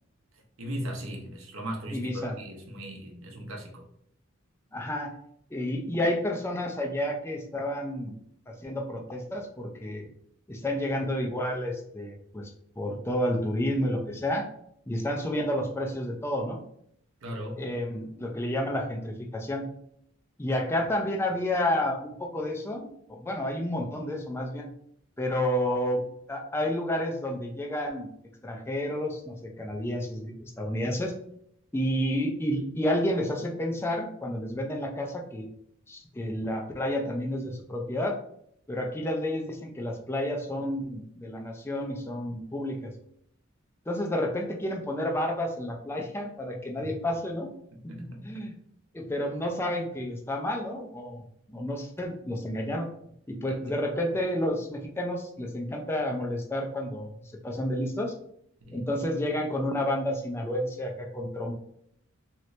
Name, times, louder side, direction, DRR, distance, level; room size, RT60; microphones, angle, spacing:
voice 1, 0.6-3.8 17.2-17.6 46.8-46.9 47.7-48.4 53.4-53.5 58.6-58.9, equal, 75° right, 1 dB, 0.7 m, -38 dB
voice 2, 1.9-2.4 4.7-5.1 5.5-8.2 8.5-10.1 10.5-12.5 12.8-14.5 14.9-16.6 17.6-19.7 20.4-24.7 25.2-28.1 28.4-31.1 31.7-35.5 35.9-38.2 38.7-42.9 43.9-47.5 47.8-48.5 48.9-51.2 51.5-52.9 53.3-57.1 57.4-58.1 58.7-61.5, left 1 dB, 10° left, 1 dB, 0.4 m, -30 dB
2.9 x 2.7 x 3.1 m, 0.71 s
head